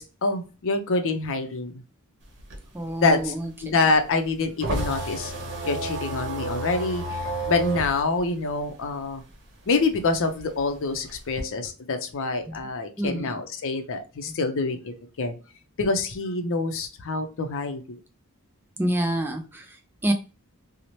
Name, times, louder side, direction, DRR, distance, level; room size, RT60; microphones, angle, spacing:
voice 1, 0.0-1.8 3.0-3.3 3.6-5.3 5.6-7.2 7.5-9.2 9.7-15.4 15.8-18.0, left 3 dB, 60° left, 7 dB, 0.5 m, -26 dB
sound 1, 2.2-9.3 9.7-11.4, right 2 dB, 50° right, 0.8 m, -32 dB
voice 2, 2.7-3.5 12.5-12.6 13.0-13.4 14.3-14.4 18.8-20.1, right 1 dB, 10° right, 4 dB, 0.3 m, -28 dB
2.7 x 2.0 x 3.0 m, 0.32 s
head